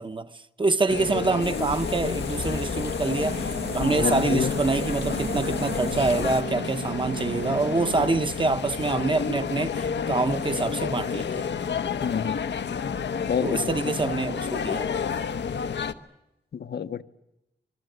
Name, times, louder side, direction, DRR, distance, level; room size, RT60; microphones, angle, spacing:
voice 1, 0.0-11.5 13.4-14.9, right 3 dB, 30° right, 0.8 m, -26 dB
sound 1, 0.9-15.9, left 6 dB, 90° left, 1.0 m, -30 dB
sound 2, 1.4-6.4, left 3 dB, 35° left, 0.9 m, -37 dB
sound 3, 3.2-8.2, right 6 dB, 85° right, 1.3 m, -36 dB
voice 2, 3.8-4.5 12.0-12.4 12.8-12.9 13.3-13.7 16.5-17.0, left 7 dB, 70° left, 0.9 m, -28 dB
25.5 x 21.5 x 8.0 m
wide cardioid pair, 170°, 18 cm